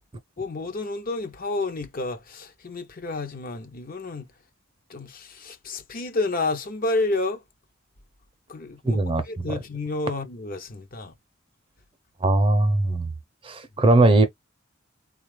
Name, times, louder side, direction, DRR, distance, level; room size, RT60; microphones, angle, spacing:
voice 1, 0.4-4.3 4.9-7.4 8.5-11.1, left 2 dB, 45° left, 0.6 m, -30 dB
voice 2, 8.8-9.6 12.2-13.1 13.4-14.3, right 2 dB, 25° right, 0.6 m, -20 dB
3.9 x 2.3 x 3.2 m
head